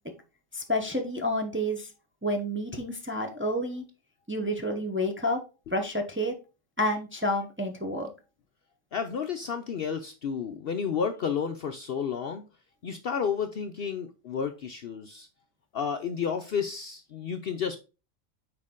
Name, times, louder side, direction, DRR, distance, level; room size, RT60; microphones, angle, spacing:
voice 1, 0.5-1.9 2.2-3.8 4.3-5.4 5.7-6.3 6.8-8.1, left 1 dB, 10° right, 2 dB, 0.6 m, -29 dB
voice 2, 8.9-12.4 12.8-15.3 15.7-17.8, left 6 dB, 60° left, 7 dB, 0.7 m, -31 dB
6.4 x 4.5 x 3.7 m, 0.31 s
omnidirectional pair, 1.4 m